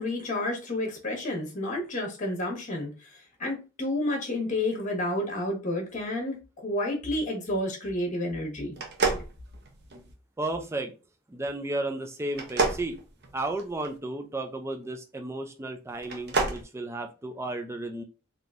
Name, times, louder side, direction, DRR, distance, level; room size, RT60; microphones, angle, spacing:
voice 1, 0.0-8.7, left 1 dB, 35° left, 1.2 m, -30 dB
sound 1, 8.7-10.1 12.3-13.9 16.0-16.6, right 3 dB, 50° right, 0.6 m, -29 dB
voice 2, 10.4-10.9 11.3-13.0 13.3-18.0, right 2 dB, 10° right, 0.3 m, -33 dB
3.8 x 2.7 x 2.4 m
head